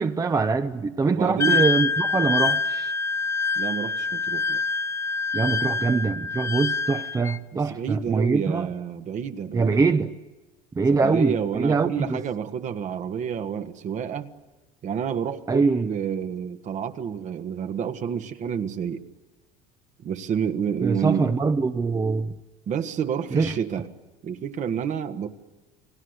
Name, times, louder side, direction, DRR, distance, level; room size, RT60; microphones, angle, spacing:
voice 1, 0.0-2.9 5.3-8.7 9.5-10.1 10.7-12.2 15.5-15.9 20.8-22.4 23.3-23.6, right 4 dB, 20° right, 0.9 m, -23 dB
voice 2, 1.1-1.6 3.6-4.6 7.5-10.0 11.0-14.3 14.8-19.0 20.0-21.3 22.7-23.9 24.2-25.3, right 8 dB, 45° right, 1.7 m, -29 dB
Wind instrument woodwind instrument, 1.4-7.4, left 4 dB, 15° left, 0.8 m, -26 dB
29.5 x 19.5 x 8.2 m
supercardioid pair, 105°, 17 cm